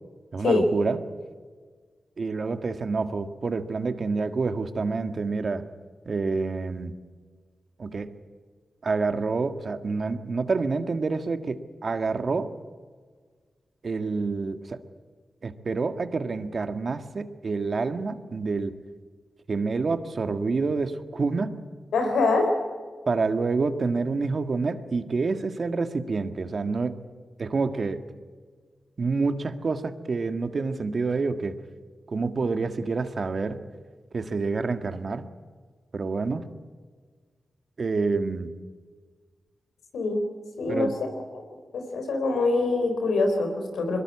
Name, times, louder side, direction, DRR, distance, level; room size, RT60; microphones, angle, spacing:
voice 1, 0.3-1.0 2.2-5.6 6.1-6.9 7.8-8.1 8.8-12.5 13.8-14.8 15.4-18.7 19.5-21.6 23.1-27.0 27.4-28.0 29.0-31.6 32.1-33.6 34.1-35.3 35.9-36.5 37.8-38.5 40.7-40.9, right 4 dB, 60° right, 9 dB, 1.7 m, -27 dB
voice 2, 21.9-22.5 39.9-40.2 40.6-40.9 41.7-44.0, left 3 dB, 90° left, 4 dB, 4.2 m, -24 dB
22.5 x 20.5 x 8.6 m, 1.5 s
supercardioid pair, 40°, 0 cm